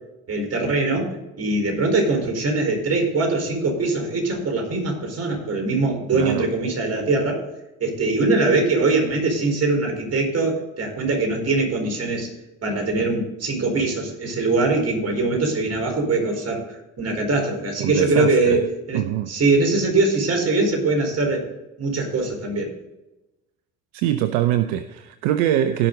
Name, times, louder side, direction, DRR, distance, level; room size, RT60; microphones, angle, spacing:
voice 1, 0.3-1.1 1.4-7.4 7.8-12.3 12.6-18.6 18.9-19.0 19.3-21.5 21.8-22.7, right 3 dB, 45° right, 2 dB, 4.4 m, -22 dB
voice 2, 6.1-6.5 17.8-18.6 18.9-19.3 23.9-25.9, right 12 dB, 80° right, 10 dB, 0.7 m, -23 dB
17.0 x 6.0 x 3.9 m, 0.98 s
hypercardioid pair, 65°, 35 cm